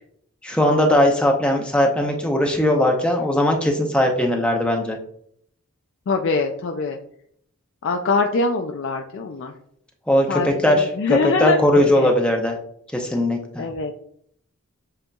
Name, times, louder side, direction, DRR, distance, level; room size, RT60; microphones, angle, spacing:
voice 1, 0.4-5.0 10.1-12.5 12.9-13.7, left 1 dB, 5° left, 1 dB, 0.6 m, -19 dB
voice 2, 6.1-7.0 7.8-9.5 10.3-12.1 13.6-13.9, left 4 dB, 55° left, 3 dB, 0.4 m, -23 dB
7.6 x 2.8 x 2.3 m, 0.68 s
head